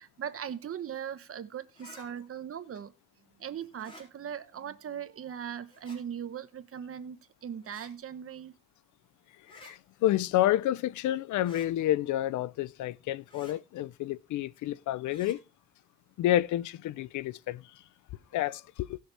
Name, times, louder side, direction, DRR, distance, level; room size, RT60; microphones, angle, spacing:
voice 1, 0.0-2.9 3.4-8.5, right 8 dB, 50° right, 1.0 m, -39 dB
sound 1, 1.8-2.1 3.7-4.1 5.7-6.0 7.6-7.9 9.4-9.7 11.4-11.7 13.3-13.6 15.1-15.4, left 1 dB, 15° left, 4.3 m, -52 dB
voice 2, 9.5-15.4 16.2-17.6 18.3-19.0, left 13 dB, 75° left, 0.5 m, -29 dB
17.5 x 6.5 x 3.3 m
cardioid pair, 90°, 30 cm